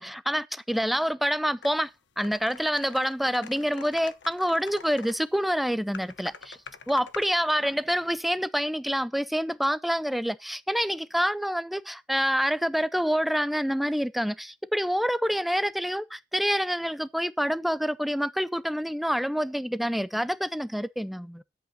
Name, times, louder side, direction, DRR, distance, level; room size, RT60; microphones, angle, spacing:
voice 1, 0.0-1.9 2.2-6.6 6.9-21.4, equal, ahead, 0.5 m, -27 dB
sound 1, 1.6-1.7 2.2-5.2 5.9-7.3, left 5 dB, 85° left, 0.9 m, -44 dB
10.5 x 8.2 x 4.2 m
head